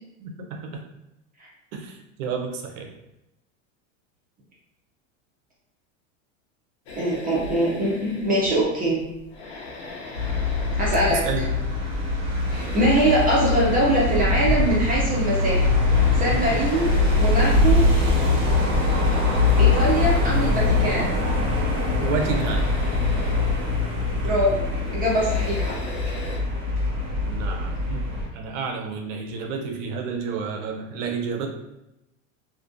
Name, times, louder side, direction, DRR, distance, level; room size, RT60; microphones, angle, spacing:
voice 1, 0.2-0.8 1.7-2.9 11.1-11.4 22.0-22.8 27.2-31.5, right 5 dB, 65° right, 3 dB, 0.6 m, -30 dB
sound 1, 6.9-26.4, left 2 dB, 55° left, 0.7 m, -40 dB
voice 2, 6.9-9.0 10.8-11.2 12.5-15.8 16.2-16.9 17.2-17.8 19.6-21.1 24.2-25.8, right 1 dB, 20° right, -5 dB, 0.5 m, -23 dB
sound 2, 10.1-28.3, left 3 dB, 40° right, 1.1 m, -22 dB
2.5 x 2.2 x 2.5 m, 0.89 s
supercardioid pair, 130°, 40 cm